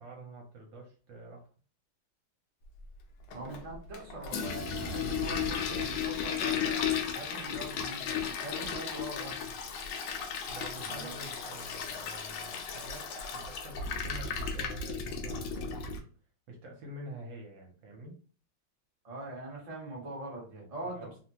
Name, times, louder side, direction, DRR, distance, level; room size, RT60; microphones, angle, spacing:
voice 1, 0.0-1.5 10.5-16.1 16.5-18.2 20.8-21.2, right 1 dB, 70° right, 0 dB, 1.3 m, -47 dB
Toilet flush, 3.3-16.0, left 6 dB, 80° left, 1.4 m, -35 dB
voice 2, 3.3-9.5 10.8-11.1 19.0-21.2, right 2 dB, 30° right, -4 dB, 0.7 m, -42 dB
3.5 x 2.1 x 2.8 m, 0.41 s
omnidirectional pair, 2.4 m